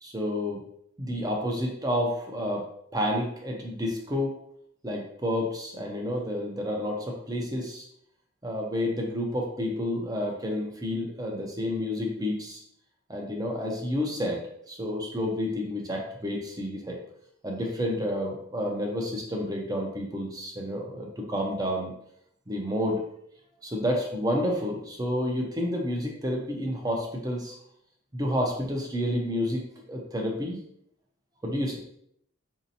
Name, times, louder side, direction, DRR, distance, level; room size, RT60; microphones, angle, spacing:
voice 1, 0.0-0.6 1.0-4.4 4.8-7.9 8.4-12.6 13.1-17.0 17.4-21.9 22.5-23.0 23.6-27.6 28.1-30.6 31.4-31.8, left 1 dB, 20° right, 0 dB, 0.5 m, -30 dB
4.1 x 2.7 x 2.7 m, 0.71 s
head